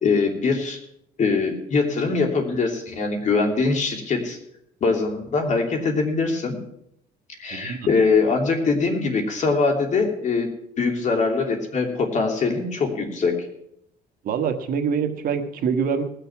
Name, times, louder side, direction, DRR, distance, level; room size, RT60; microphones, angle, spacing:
voice 1, 0.0-0.8 1.2-4.4 4.8-6.6 7.4-10.5 10.8-13.5, left 4 dB, 45° left, 3 dB, 3.0 m, -22 dB
voice 2, 14.2-16.0, right 6 dB, 55° right, 6 dB, 1.5 m, -25 dB
19.5 x 6.7 x 6.1 m, 0.74 s
cardioid pair, 110°, 17 cm